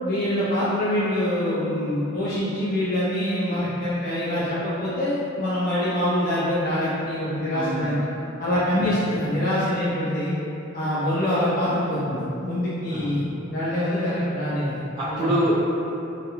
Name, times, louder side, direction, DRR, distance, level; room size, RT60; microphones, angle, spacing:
voice 1, 0.0-8.0 8.4-10.3 10.7-15.3, left 1 dB, 45° left, -11 dB, 0.5 m, -25 dB
voice 2, 7.5-8.1 8.7-9.2 12.9-13.2 15.0-15.5, right 1 dB, 25° right, -14 dB, 0.5 m, -27 dB
2.4 x 2.1 x 2.9 m, 2.9 s
head